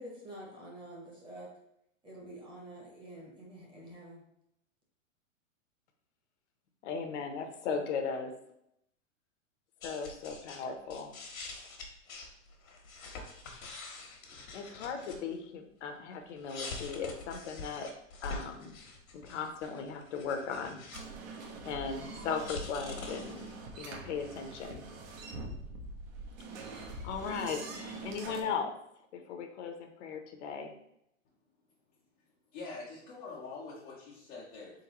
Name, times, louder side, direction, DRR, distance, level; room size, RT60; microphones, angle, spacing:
voice 1, 0.0-1.5 2.0-4.2, right 1 dB, 10° right, -2 dB, 0.8 m, -47 dB
voice 2, 6.8-8.3 9.8-11.1 14.5-17.9 18.2-18.8 19.1-20.8 21.6-23.4 23.8-24.9 27.0-28.8 29.1-30.7, left 5 dB, 60° left, 6 dB, 0.7 m, -37 dB
sound 1, 9.8-10.6 10.9-15.3 16.3-21.0 21.3-23.6, left 3 dB, 85° left, 1.2 m, -45 dB
sound 2, 20.9-28.4, right 2 dB, 70° right, 1.0 m, -44 dB
voice 3, 32.5-34.8, left 3 dB, 20° left, -7 dB, 0.4 m, -45 dB
3.9 x 3.8 x 2.8 m, 0.77 s
hypercardioid pair, 140°, 41 cm